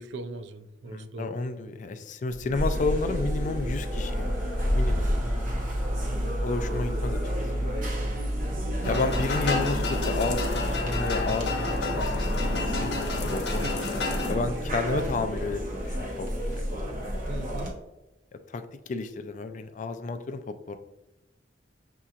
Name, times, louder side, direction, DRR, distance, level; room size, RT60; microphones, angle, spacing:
voice 1, 0.0-1.3 5.1-5.4 6.1-6.4 8.8-9.2 12.0-12.5 13.6-14.3 17.3-17.8, right 3 dB, 75° right, 9 dB, 0.4 m, -41 dB
voice 2, 0.9-4.4 4.7-5.1 6.4-7.2 8.8-11.7 11.9-14.0 14.3-16.6 18.5-20.8, left 3 dB, 45° left, 9 dB, 0.3 m, -31 dB
sound 1, 2.3-9.6, equal, ahead, 0.8 m, -44 dB
sound 2, 2.5-17.7, equal, 50° right, 0.9 m, -29 dB
sound 3, 8.8-14.4, left 3 dB, 65° left, 0.9 m, -30 dB
6.5 x 2.8 x 2.4 m, 0.99 s
head